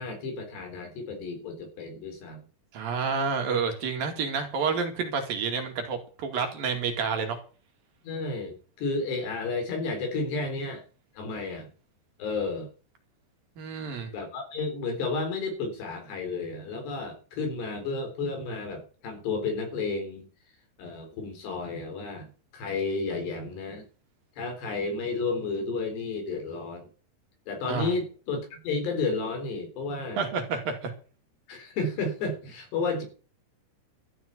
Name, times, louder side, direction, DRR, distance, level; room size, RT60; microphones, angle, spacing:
voice 1, 0.0-2.4 8.0-10.8 11.2-11.7 12.2-12.7 14.1-20.3 20.8-23.8 24.4-26.9 27.5-30.2 31.5-33.0, left 3 dB, 75° left, 5 dB, 6.1 m, -32 dB
voice 2, 2.7-7.4 13.6-14.1 27.7-27.9 30.2-30.9, right 5 dB, 60° right, 5 dB, 3.7 m, -29 dB
13.5 x 7.7 x 8.2 m, 0.38 s
omnidirectional pair, 4.9 m